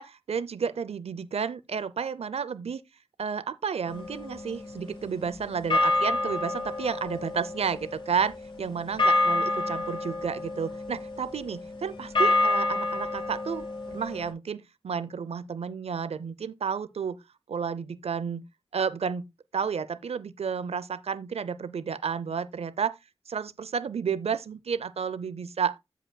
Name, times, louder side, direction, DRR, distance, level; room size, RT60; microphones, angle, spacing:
voice 1, 0.0-2.8 3.2-17.2 17.5-18.4 18.7-19.2 19.5-23.0 23.3-25.7, right 6 dB, 85° right, 0.6 m, -31 dB
sound 1, 3.9-5.2 5.7-14.3, left 2 dB, 55° left, 3.0 m, -29 dB
15.0 x 5.2 x 2.2 m
wide cardioid pair, 90°, 10 cm